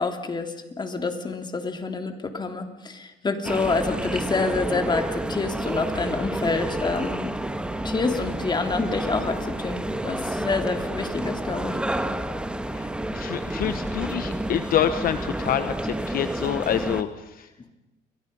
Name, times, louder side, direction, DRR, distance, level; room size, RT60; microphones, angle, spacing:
voice 1, 0.0-7.3 7.8-11.8 17.6-17.7, left 3 dB, 25° left, 6 dB, 3.1 m, -27 dB
sound 1, 3.4-17.0, right 1 dB, 5° right, 1.6 m, -30 dB
voice 2, 12.7-17.7, left 10 dB, 60° left, 11 dB, 1.1 m, -27 dB
29.0 x 23.5 x 5.5 m, 0.94 s
cardioid pair, 110°, 17 cm